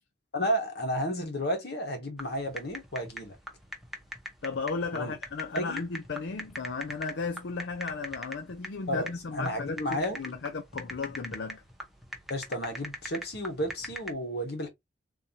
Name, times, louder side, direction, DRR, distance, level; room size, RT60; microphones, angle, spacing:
voice 1, 0.3-3.4 4.9-5.2 5.5-5.8 8.9-10.2 12.3-14.7, equal, 60° left, 1.3 m, -32 dB
sound 1, 2.2-14.1, equal, ahead, 0.8 m, -42 dB
voice 2, 4.4-11.6, left 4 dB, 75° left, 0.5 m, -35 dB
3.8 x 2.8 x 2.8 m
head